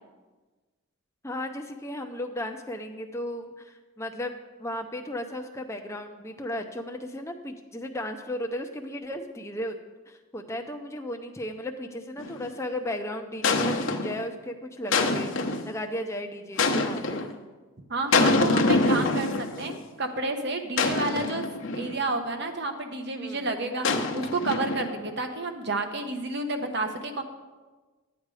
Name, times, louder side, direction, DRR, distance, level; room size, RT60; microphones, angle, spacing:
voice 1, 1.2-4.3 4.6-9.7 10.1-17.3 23.2-23.6, left 1 dB, 15° left, 4 dB, 0.6 m, -35 dB
sound 1, 12.2-12.5 13.4-14.2 14.9-15.7 16.6-17.3 18.1-19.8 20.8-22.0 23.8-25.1, left 3 dB, 60° left, 0.9 m, -25 dB
voice 2, 17.9-21.5 21.7-27.2, right 2 dB, 50° right, 6 dB, 1.0 m, -30 dB
12.0 x 8.2 x 4.9 m, 1.3 s
head